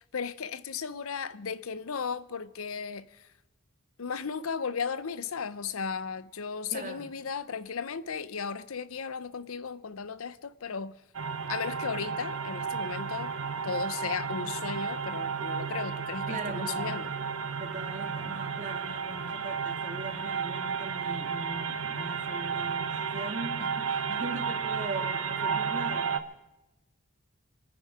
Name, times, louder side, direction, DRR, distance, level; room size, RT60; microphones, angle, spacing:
voice 1, 0.0-3.3 4.0-11.0 11.5-13.3 13.6-17.1, left 6 dB, 85° left, 0.7 m, -35 dB
voice 2, 6.7-7.1 16.3-17.0 17.6-26.2, right 2 dB, 35° right, 1.9 m, -40 dB
sound 1, 11.1-26.2, right 6 dB, 85° right, 1.0 m, -33 dB
26.5 x 9.9 x 4.9 m
head